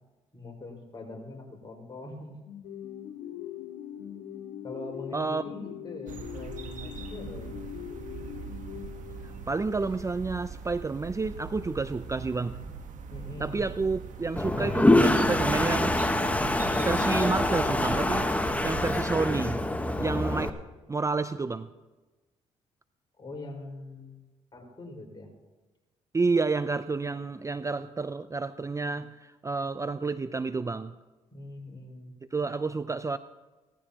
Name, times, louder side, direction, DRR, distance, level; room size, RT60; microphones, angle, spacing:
voice 1, 0.3-2.3 4.6-7.6 13.1-13.6 23.2-24.2 24.5-25.3 31.3-32.1, left 2 dB, 30° left, -1 dB, 5.0 m, -42 dB
sound 1, 2.5-9.6, left 10 dB, 75° left, 1.8 m, -41 dB
voice 2, 5.1-5.4 9.2-12.6 13.4-16.0 16.8-20.6 20.9-21.7 26.1-30.9 32.3-33.2, right 4 dB, 20° right, 13 dB, 0.5 m, -30 dB
sound 2, 6.1-19.0, right 5 dB, 65° right, 1.3 m, -41 dB
Toilet flush, 14.4-20.5, left 1 dB, 10° left, 1.2 m, -25 dB
18.0 x 13.5 x 3.0 m, 1.2 s
hypercardioid pair, 55°, 14 cm